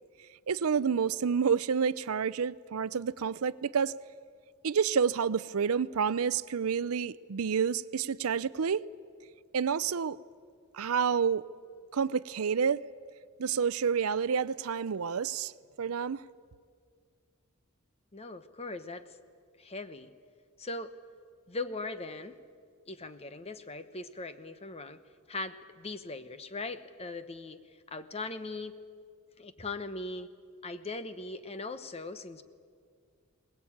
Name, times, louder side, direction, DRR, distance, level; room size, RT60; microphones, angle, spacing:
voice 1, 0.5-3.9 4.6-8.8 9.5-10.2 10.7-11.4 11.9-12.8 13.4-15.5 15.8-16.2, right 6 dB, 75° right, 0.5 m, -29 dB
voice 2, 18.1-19.2 19.6-20.1 20.6-21.0 21.5-22.4 22.9-25.0 25.3-27.6 27.9-28.8 29.4-30.3 30.6-32.4, left 3 dB, 30° left, 1.0 m, -39 dB
21.5 x 20.0 x 8.7 m
head